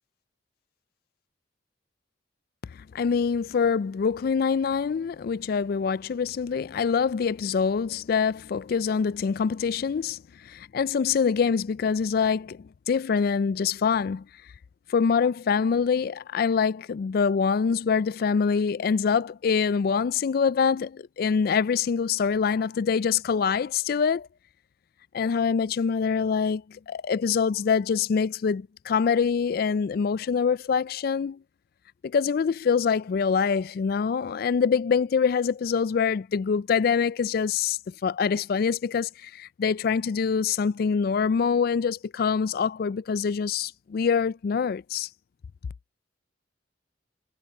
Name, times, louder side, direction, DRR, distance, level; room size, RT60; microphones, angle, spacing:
voice 1, 2.7-14.3 14.9-24.3 25.1-31.4 32.0-45.1, left 6 dB, 50° left, 0.3 m, -25 dB
head